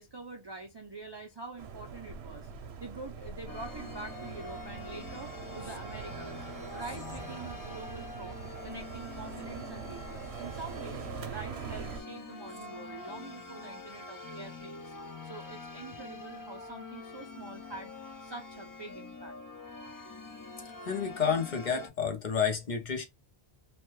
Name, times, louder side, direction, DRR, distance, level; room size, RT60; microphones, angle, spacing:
voice 1, 0.0-2.5 2.8-6.4 6.7-8.4 8.6-14.9 15.2-17.9 18.2-19.4, right 3 dB, 45° right, 0.3 m, -45 dB
sound 1, 1.6-12.0, right 6 dB, 75° right, 0.8 m, -43 dB
sound 2, 3.5-21.9, left 3 dB, 30° left, 0.4 m, -45 dB
voice 2, 20.9-23.0, left 6 dB, 50° left, 0.8 m, -30 dB
3.0 x 2.2 x 3.0 m
omnidirectional pair, 1.1 m